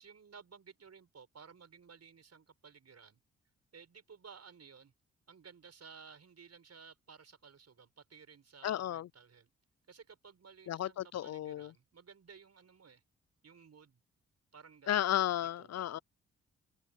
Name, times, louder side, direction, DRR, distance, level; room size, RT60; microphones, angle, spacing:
voice 1, 0.0-3.2 3.7-4.9 5.3-9.5 9.9-13.0 13.4-14.0 14.5-15.0 15.4-15.9, right 6 dB, 50° right, 6.6 m, -56 dB
voice 2, 8.6-9.1 10.7-11.7 14.9-16.0, left 11 dB, 55° left, 0.6 m, -33 dB
hypercardioid pair, 40°, 32 cm